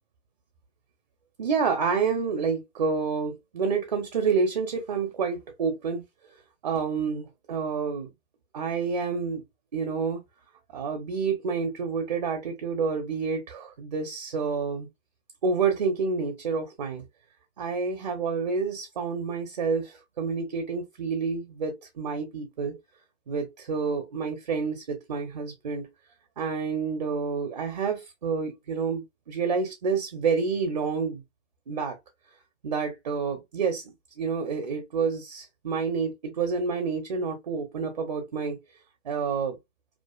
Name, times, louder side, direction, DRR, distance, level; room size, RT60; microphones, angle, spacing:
voice 1, 1.4-6.0 6.6-8.1 8.5-9.4 9.7-10.2 10.7-14.9 15.4-17.0 17.6-22.8 23.3-25.9 26.4-31.2 31.7-32.0 32.6-38.6 39.0-39.6, right 5 dB, 35° right, 0.5 m, -28 dB
2.4 x 2.3 x 2.3 m
hypercardioid pair, 150°, 36 cm